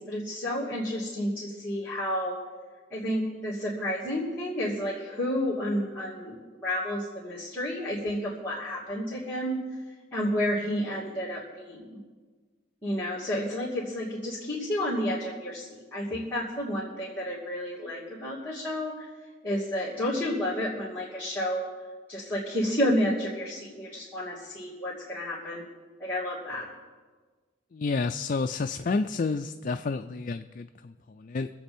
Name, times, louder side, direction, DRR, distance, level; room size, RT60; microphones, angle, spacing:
voice 1, 0.0-2.4 2.9-9.6 10.1-12.0 12.8-19.1 19.4-21.7 22.1-25.7 26.0-26.7, equal, 10° left, -9 dB, 2.6 m, -31 dB
voice 2, 27.7-31.5, left 4 dB, 45° left, 8 dB, 0.4 m, -30 dB
24.0 x 8.1 x 4.4 m, 1.4 s
head